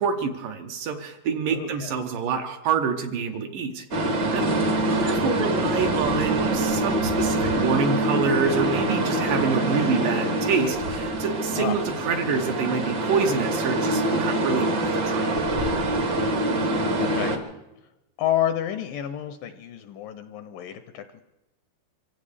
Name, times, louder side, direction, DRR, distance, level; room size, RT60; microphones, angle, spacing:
voice 1, 0.0-4.5 4.9-15.4, right 5 dB, 70° right, 4 dB, 2.3 m, -27 dB
voice 2, 1.5-1.9 11.5-11.8 17.0-17.4 18.2-21.2, left 11 dB, 80° left, 9 dB, 2.1 m, -29 dB
sound 1, 3.9-17.4, right 1 dB, 55° right, 1.2 m, -25 dB
25.0 x 16.0 x 3.4 m, 0.94 s
omnidirectional pair, 4.4 m